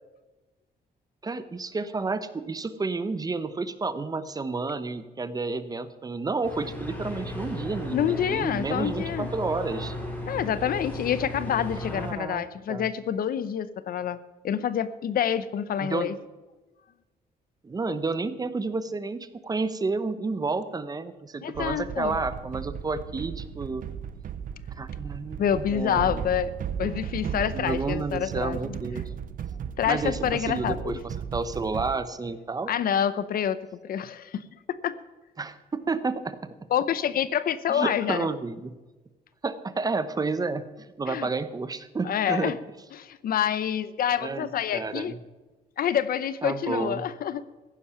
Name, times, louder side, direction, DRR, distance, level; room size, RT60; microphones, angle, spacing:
voice 1, 1.2-10.0 11.9-12.9 15.8-16.1 17.6-23.9 24.8-26.3 27.5-29.0 29.9-32.7 35.4-36.5 37.7-38.8 39.4-40.7 41.0-42.5 44.2-45.2 46.4-47.1, right 3 dB, 20° right, 13 dB, 0.8 m, -31 dB
sound 1, 6.4-12.1, left 1 dB, 10° left, 3.2 m, -35 dB
voice 2, 7.9-9.3 10.2-14.2 14.4-16.2 21.4-22.2 25.4-28.8 29.8-31.0 32.7-33.6 33.8-35.0 36.7-38.3 41.1-41.3 42.0-42.6 43.0-45.1 45.8-47.4, left 9 dB, 60° left, 15 dB, 0.7 m, -27 dB
sound 2, 21.5-31.9, right 8 dB, 55° right, 0.7 m, -35 dB
15.0 x 10.5 x 5.8 m, 1.2 s
cardioid pair, 140°, 17 cm